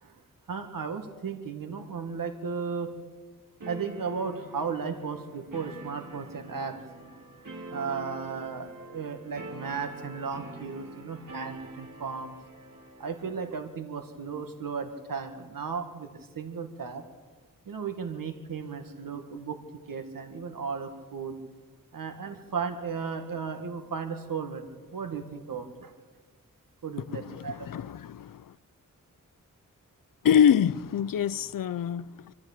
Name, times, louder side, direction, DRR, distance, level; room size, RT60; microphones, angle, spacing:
voice 1, 0.5-2.9 3.7-7.1 7.6-12.4 13.0-17.0 17.7-19.6 19.9-21.4 21.9-25.9 26.8-27.6, right 5 dB, 85° right, 1.8 m, -35 dB
sound 1, 3.6-13.7, right 1 dB, 70° right, 3.0 m, -45 dB
voice 2, 27.1-28.5 30.2-32.3, left 8 dB, 85° left, 0.6 m, -25 dB
26.5 x 13.0 x 8.4 m
wide cardioid pair, 95°, 33 cm